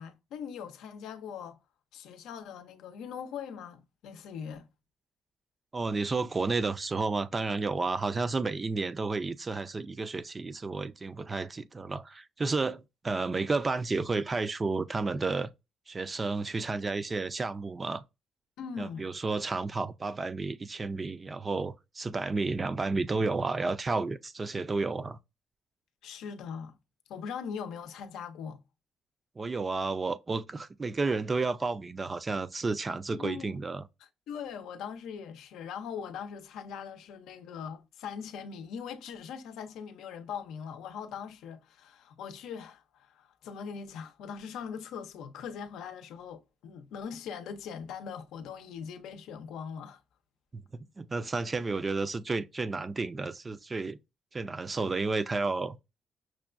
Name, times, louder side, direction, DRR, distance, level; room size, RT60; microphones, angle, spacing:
voice 1, 0.0-1.6 1.9-4.7 18.6-19.1 26.0-26.7 27.1-28.6 33.1-33.6 34.3-50.0, left 7 dB, 85° left, 0.5 m, -41 dB
voice 2, 5.7-15.5 15.9-18.0 18.8-25.2 29.4-33.8 50.5-54.0 54.3-55.8, right 3 dB, 30° right, 0.4 m, -31 dB
6.1 x 2.2 x 2.4 m
cardioid pair, 90°, 0 cm